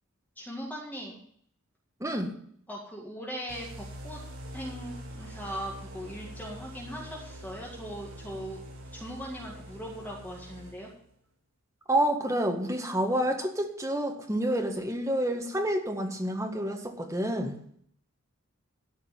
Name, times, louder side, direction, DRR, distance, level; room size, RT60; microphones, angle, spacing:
voice 1, 0.4-1.2 2.7-4.2 4.5-8.6 8.9-10.9, equal, 10° left, -3 dB, 2.0 m, -39 dB
voice 2, 2.0-2.3 11.9-17.6, right 1 dB, 15° right, 3 dB, 1.6 m, -28 dB
sound 1, 3.5-11.1, equal, 75° right, 6.6 m, -44 dB
13.5 x 5.2 x 8.9 m, 0.65 s
head